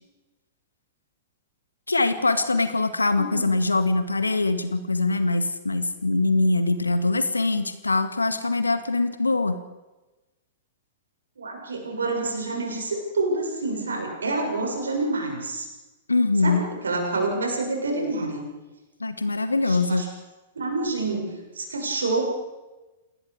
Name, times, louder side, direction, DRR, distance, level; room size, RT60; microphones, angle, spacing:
voice 1, 1.9-9.6 16.1-16.6 19.0-20.1, left 3 dB, 85° left, 10 dB, 1.9 m, -23 dB
voice 2, 3.1-3.5 11.4-15.7 16.4-18.5 19.7-20.1 20.6-22.3, right 2 dB, 75° right, 1 dB, 7.1 m, -28 dB
28.0 x 20.0 x 5.0 m, 1.1 s
figure-of-eight pair, 105°, 0 cm